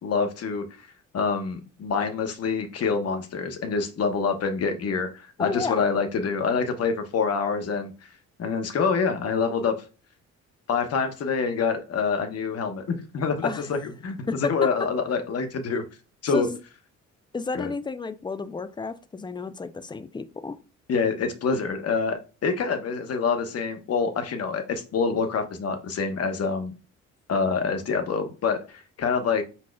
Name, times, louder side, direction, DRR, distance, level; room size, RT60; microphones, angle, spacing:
voice 1, 0.0-0.7 1.1-7.9 8.4-9.7 10.7-15.8 16.2-16.5 17.5-17.7 20.9-26.7 27.3-29.4, left 5 dB, 55° left, 0.9 m, -26 dB
voice 2, 5.4-5.8 13.4-13.7 14.3-14.9 16.3-16.6 17.3-20.6, left 4 dB, 15° left, 0.3 m, -31 dB
4.7 x 4.2 x 2.2 m
cardioid pair, 90°, 30 cm